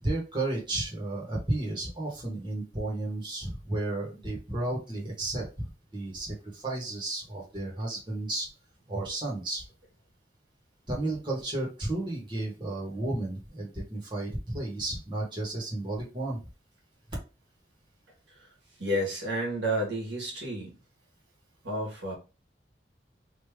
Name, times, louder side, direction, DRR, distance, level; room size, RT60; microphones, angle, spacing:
voice 1, 0.0-8.5 8.9-9.6 10.9-16.4, right 2 dB, 25° right, -3 dB, 1.4 m, -33 dB
voice 2, 18.8-20.7 21.6-22.1, right 1 dB, 80° right, -1 dB, 1.6 m, -30 dB
3.3 x 2.7 x 3.5 m, 0.30 s
head